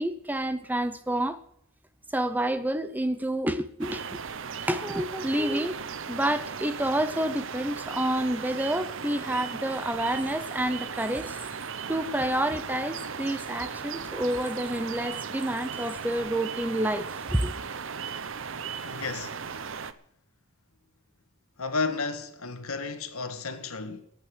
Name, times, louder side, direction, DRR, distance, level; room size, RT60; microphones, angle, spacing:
voice 1, 0.0-1.4 2.1-4.0 4.6-5.8 6.1-11.6 11.9-17.5, right 1 dB, 10° right, 0.6 m, -29 dB
sound 1, 3.8-19.9, right 6 dB, 60° right, 0.8 m, -37 dB
voice 2, 18.8-19.4 21.6-24.0, left 4 dB, 75° left, 1.8 m, -32 dB
14.0 x 9.3 x 8.1 m
head